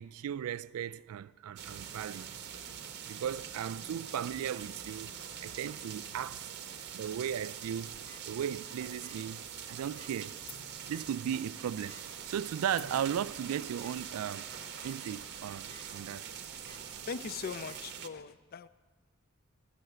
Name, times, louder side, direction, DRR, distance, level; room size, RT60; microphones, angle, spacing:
voice 1, 0.0-2.3 3.1-5.1 5.4-6.5 6.9-8.0 8.2-10.4 10.9-12.0 12.3-14.5 14.8-16.3, right 9 dB, 80° right, 0.3 m, -36 dB
sound 1, 1.6-18.1, right 8 dB, 55° right, 0.7 m, -44 dB
sound 2, 7.8-8.2 9.0-9.3 9.5-9.6 10.0-10.1 10.9-11.2 11.9-12.0 12.9-13.0 13.5-13.6 13.8-14.0 14.6-15.0 15.4-15.8 16.7-16.8 17.7-17.8, left 1 dB, 5° left, 0.6 m, -55 dB
sound 3, 10.5-15.6, left 4 dB, 75° left, 1.4 m, -56 dB
voice 2, 17.0-18.7, left 5 dB, 45° left, 0.4 m, -40 dB
12.5 x 6.5 x 7.9 m
head